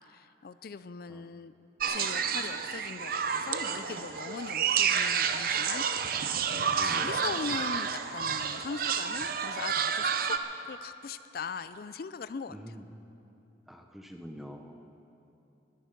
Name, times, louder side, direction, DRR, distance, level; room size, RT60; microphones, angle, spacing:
voice 1, 0.1-1.5 1.9-10.4 10.7-12.7, left 5 dB, 50° left, 13 dB, 0.4 m, -40 dB
sound 1, 1.8-10.4, right 7 dB, 50° right, 0.6 m, -30 dB
voice 2, 6.7-7.1 12.5-12.8 13.7-14.8, equal, ahead, 4 dB, 0.8 m, -45 dB
21.5 x 11.0 x 5.3 m, 2.8 s
head